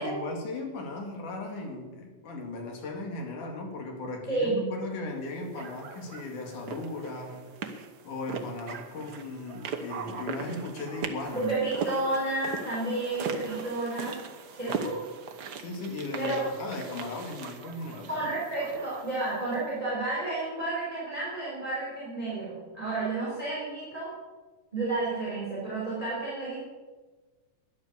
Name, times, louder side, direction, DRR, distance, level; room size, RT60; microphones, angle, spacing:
voice 1, 0.0-7.5 8.0-11.5 14.6-15.0 15.6-18.3, left 2 dB, 80° left, 2 dB, 3.8 m, -37 dB
voice 2, 4.3-4.8 11.3-14.2 14.6-14.9 16.2-16.4 18.1-24.1 24.7-26.6, right 2 dB, 10° right, -6 dB, 3.8 m, -31 dB
sound 1, 5.6-19.6, right 5 dB, 80° right, 0.9 m, -39 dB
12.5 x 10.5 x 6.9 m, 1.3 s
omnidirectional pair, 3.5 m